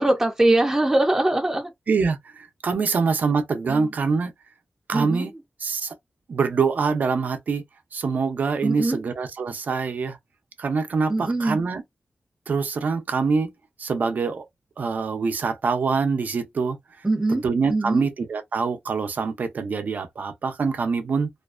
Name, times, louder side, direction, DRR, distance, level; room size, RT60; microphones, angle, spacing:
voice 1, 0.0-1.7 3.7-3.9 4.9-5.3 8.6-9.0 11.1-11.6 17.0-17.4 17.7-18.0, right 2 dB, 15° right, 0.5 m, -22 dB
voice 2, 1.9-4.3 4.9-5.3 5.6-5.9 6.3-7.6 7.9-10.2 10.6-11.8 12.5-13.5 13.8-14.5 14.8-16.8 17.3-21.3, right 5 dB, 70° right, 0.5 m, -25 dB
2.4 x 2.2 x 2.3 m
wide cardioid pair, 115°, 3 cm